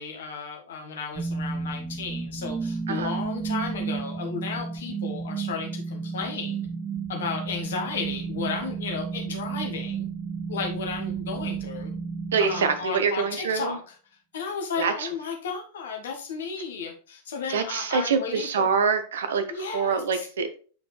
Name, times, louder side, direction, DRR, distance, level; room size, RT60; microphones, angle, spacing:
voice 1, 0.0-6.7 7.1-10.1 10.5-11.9 12.4-13.8 14.3-18.7 19.5-20.2, left 5 dB, 60° left, 2 dB, 1.5 m, -34 dB
sound 1, 1.1-13.1, right 5 dB, 15° right, 0.5 m, -32 dB
voice 2, 12.3-13.8 14.8-15.1 17.5-20.5, right 5 dB, 65° right, 9 dB, 0.9 m, -25 dB
8.2 x 4.8 x 3.2 m, 0.39 s
figure-of-eight pair, 90°, 0 cm